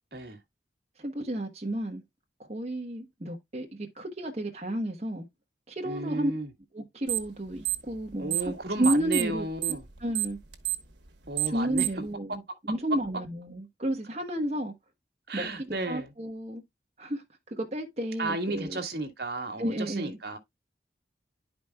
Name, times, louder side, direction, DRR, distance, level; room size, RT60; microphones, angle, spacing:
voice 1, 1.0-2.0 2.4-5.3 5.7-6.3 6.7-9.5 10.0-10.4 11.4-12.4 12.7-14.7 15.3-16.6 17.0-18.8 19.6-20.2, right 1 dB, 40° right, 1.1 m, -32 dB
voice 2, 5.8-6.5 8.2-9.8 11.3-11.8 15.3-16.1 18.2-20.4, right 2 dB, 60° right, 1.6 m, -33 dB
sound 1, 7.1-7.4 7.6-8.6 8.8-12.1, right 18 dB, 85° right, 1.2 m, -29 dB
11.0 x 5.1 x 2.3 m
head